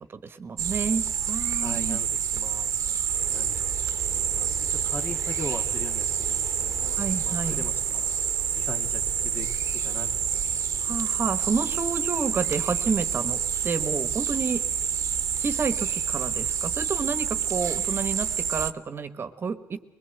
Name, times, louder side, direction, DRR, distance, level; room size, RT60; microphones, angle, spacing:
voice 1, 0.1-2.0 7.0-7.6 10.8-14.6 15.4-19.8, right 5 dB, 40° right, 10 dB, 1.3 m, -30 dB
sound 1, 0.6-18.7, right 8 dB, 55° right, 1.1 m, -28 dB
voice 2, 1.6-3.0 3.3-3.8 4.4-8.1 8.6-9.5 9.8-10.6, left 2 dB, 35° left, 5 dB, 2.0 m, -40 dB
sound 2, 3.1-14.9, equal, 15° left, 3.4 m, -46 dB
22.0 x 20.0 x 8.0 m, 1.0 s
cardioid pair, 105°, 6 cm